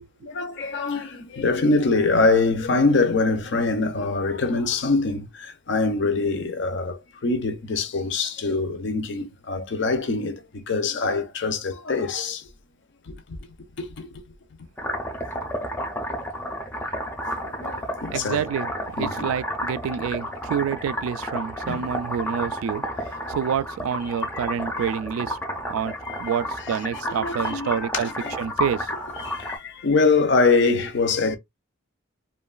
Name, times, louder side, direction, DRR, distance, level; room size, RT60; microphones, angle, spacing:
voice 1, 0.2-12.5 13.1-13.4 13.8-14.2 17.3-18.5 19.0-19.3 21.7-21.9 24.3-24.4 24.8-24.9 26.0-26.8 27.1-28.4 29.1-31.4, left 3 dB, 60° left, 0.5 m, -24 dB
sound 1, 14.8-29.6, equal, 10° left, 0.5 m, -31 dB
voice 2, 18.1-18.7 19.0-25.4 25.7-25.9 26.2-28.1 28.4-28.9, right 8 dB, 90° right, 0.3 m, -28 dB
3.0 x 2.2 x 2.3 m
head